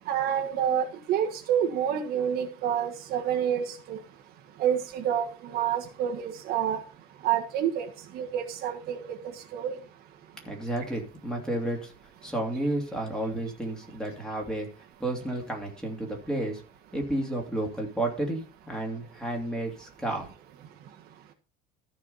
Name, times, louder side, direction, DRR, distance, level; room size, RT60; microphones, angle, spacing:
voice 1, 0.1-4.0 4.6-6.8 7.2-7.9 8.1-9.1 9.5-9.8, right 9 dB, 50° right, 5 dB, 1.5 m, -28 dB
voice 2, 10.4-11.9 12.2-14.7 15.0-16.6 16.9-20.3, right 1 dB, 5° left, 0 dB, 2.9 m, -31 dB
14.0 x 4.9 x 5.5 m, 0.36 s
cardioid pair, 150°, 20 cm